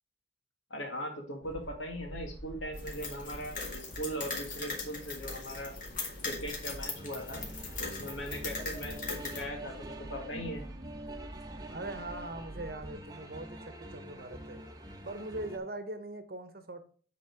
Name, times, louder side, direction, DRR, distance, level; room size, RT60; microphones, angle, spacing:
voice 1, 0.7-5.8 6.2-7.5 7.8-10.6, equal, 80° left, 3 dB, 2.1 m, -40 dB
sound 1, 1.4-12.9, right 1 dB, 20° left, 2.8 m, -48 dB
sound 2, 2.7-9.4, left 3 dB, 45° left, 2.0 m, -40 dB
sound 3, 6.9-15.6, right 1 dB, 20° right, 0.9 m, -46 dB
voice 2, 11.7-14.6 15.0-16.8, right 2 dB, 50° right, 9 dB, 1.0 m, -41 dB
9.2 x 4.2 x 4.4 m, 0.43 s
head